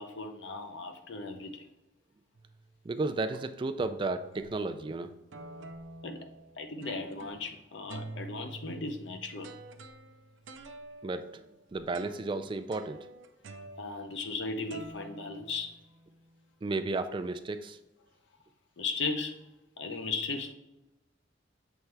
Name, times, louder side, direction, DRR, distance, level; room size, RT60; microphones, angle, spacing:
voice 1, 0.0-1.7 6.0-6.2 6.6-9.5 13.8-15.7 18.8-19.4 19.8-20.5, left 3 dB, 70° left, 6 dB, 0.7 m, -36 dB
sound 1, 2.3-2.7 3.3-3.4 3.8-4.9 5.3-7.6 7.9-14.4 14.7-16.1, right 2 dB, 80° right, 0.5 m, -48 dB
voice 2, 2.8-5.1 11.0-11.4 11.7-13.1 16.6-17.8, right 3 dB, 25° right, 9 dB, 0.3 m, -33 dB
7.1 x 3.2 x 4.5 m, 0.95 s
head